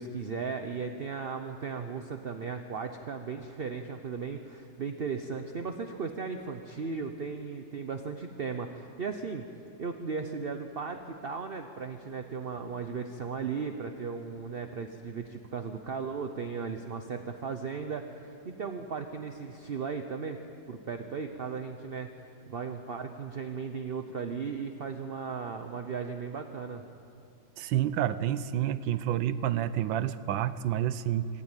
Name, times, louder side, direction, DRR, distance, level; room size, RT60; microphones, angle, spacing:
voice 1, 0.0-9.5 9.8-20.4 20.7-26.9, right 5 dB, 50° right, 6 dB, 0.7 m, -36 dB
voice 2, 27.6-31.3, right 11 dB, 85° right, 14 dB, 1.4 m, -29 dB
24.5 x 14.0 x 9.0 m, 2.8 s
omnidirectional pair, 2.1 m